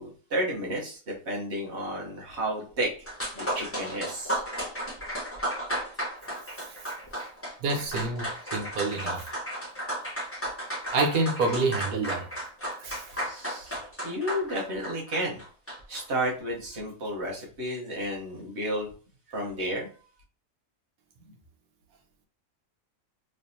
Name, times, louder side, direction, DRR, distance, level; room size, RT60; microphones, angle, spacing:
voice 1, 0.0-3.1 3.3-4.4 9.0-9.1 12.1-12.3 12.8-15.4 15.9-18.9 19.3-19.9, right 1 dB, 50° right, 1.3 m, -32 dB
sound 1, 2.8-2.9 3.1-16.0, right 1 dB, 10° left, 0.9 m, -34 dB
voice 2, 7.6-9.2 10.9-12.3 12.8-13.0, right 3 dB, 80° right, 1.3 m, -27 dB
3.2 x 3.2 x 2.7 m
omnidirectional pair, 1.5 m